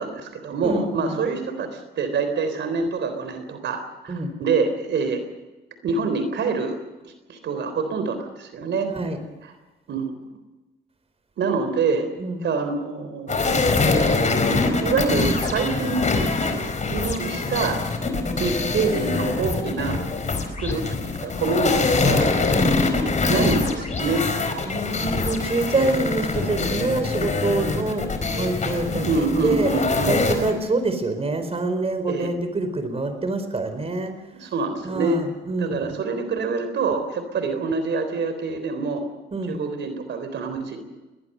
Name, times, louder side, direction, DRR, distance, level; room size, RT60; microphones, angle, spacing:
voice 1, 0.0-4.1 4.4-5.2 5.8-6.8 7.0-8.9 9.9-10.1 11.4-12.1 12.4-13.7 14.8-16.1 16.6-17.8 18.3-20.0 20.6-22.3 23.3-24.2 25.7-26.0 29.0-30.2 32.1-32.4 34.3-35.2 35.6-39.1 39.5-40.8, right 4 dB, 65° right, 8 dB, 3.7 m, -26 dB
voice 2, 0.6-1.2 4.1-4.3 8.9-9.2 12.2-12.4 22.5-22.8 24.6-29.7 30.1-34.1 34.8-36.0 39.3-39.6, right 2 dB, 30° right, 8 dB, 4.4 m, -26 dB
sound 1, 13.3-30.5, left 3 dB, 35° left, 4.5 m, -24 dB
21.5 x 20.0 x 6.7 m, 1.1 s
cardioid pair, 90°, 20 cm